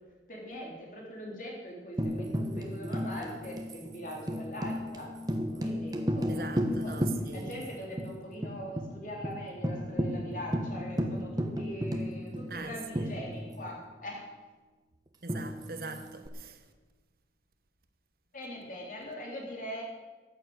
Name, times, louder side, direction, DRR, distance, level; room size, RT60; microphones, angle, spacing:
voice 1, 0.3-5.1 5.6-7.0 7.3-14.2 18.3-19.8, equal, 45° left, 3.7 m, -42 dB
Tambourine, 2.0-7.7 8.0-8.1 8.4-8.9 9.2-9.3 9.6-13.8 15.3-16.3, equal, 20° right, 1.3 m, -33 dB
voice 2, 6.3-7.7 12.5-13.1 15.2-16.6, right 3 dB, 55° right, 1.2 m, -42 dB
14.5 x 9.4 x 8.0 m
head